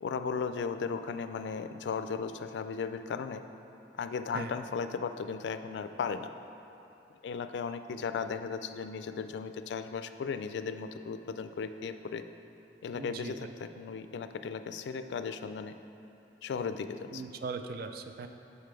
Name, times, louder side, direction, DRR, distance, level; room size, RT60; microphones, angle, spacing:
voice 1, 0.0-3.4 4.0-6.3 7.2-12.2 12.8-15.7 16.4-17.2, left 5 dB, 70° left, 9 dB, 0.3 m, -36 dB
voice 2, 12.9-13.5 17.1-18.3, right 4 dB, 60° right, 7 dB, 0.4 m, -39 dB
6.8 x 5.4 x 4.6 m, 2.8 s
head